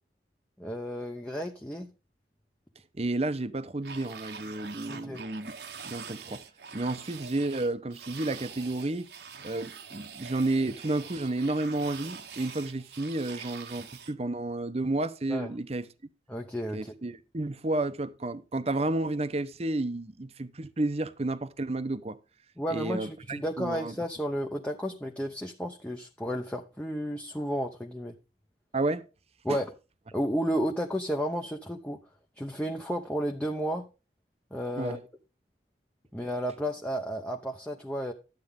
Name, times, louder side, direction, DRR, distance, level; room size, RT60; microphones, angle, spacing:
voice 1, 0.6-1.9 4.9-5.2 15.3-15.5 16.3-16.9 22.6-28.1 29.4-29.7 30.1-32.0 32.4-33.9 34.5-35.0 36.1-38.1, equal, 5° left, 0.8 m, -32 dB
voice 2, 2.9-5.5 5.8-6.4 6.7-9.1 9.4-15.9 16.7-22.2 22.7-23.9 28.7-29.0 29.5-29.6 34.8-35.0, right 2 dB, 35° right, 0.8 m, -31 dB
sound 1, 3.8-14.1, right 6 dB, 60° right, 1.0 m, -45 dB
12.0 x 8.3 x 3.6 m
head